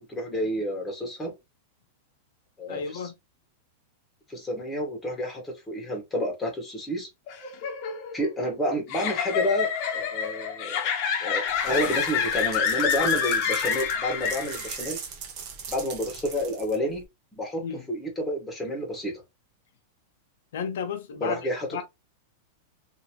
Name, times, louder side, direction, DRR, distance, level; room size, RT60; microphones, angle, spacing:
voice 1, 0.0-1.3 2.6-3.1 4.3-7.1 8.1-10.9 11.2-15.0 15.7-17.0 17.4-19.1 21.2-21.8, equal, 10° left, 1.3 m, -30 dB
voice 2, 2.7-3.1 17.6-17.8 20.5-21.4 21.7-21.8, left 6 dB, 75° left, 0.7 m, -33 dB
sound 1, 7.3-14.9, left 7 dB, 45° left, 0.8 m, -28 dB
sound 2, 11.5-17.0, right 6 dB, 40° right, 0.9 m, -40 dB
2.9 x 2.7 x 2.9 m
supercardioid pair, 145°, 0 cm